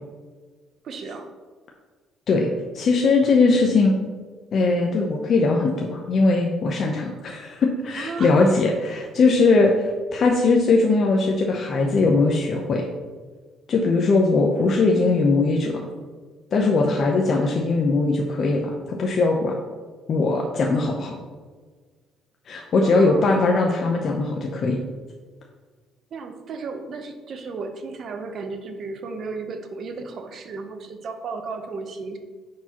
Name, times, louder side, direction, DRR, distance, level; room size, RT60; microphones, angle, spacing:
voice 1, 0.8-1.3 8.0-8.5 22.8-23.5 26.1-32.2, right 4 dB, 45° right, 6 dB, 0.8 m, -34 dB
voice 2, 2.7-4.0 4.5-12.9 13.7-15.8 16.5-19.5 20.1-21.1 22.5-24.8, left 3 dB, 40° left, 1 dB, 0.7 m, -20 dB
10.0 x 4.7 x 2.9 m, 1.5 s
cardioid pair, 145°, 0 cm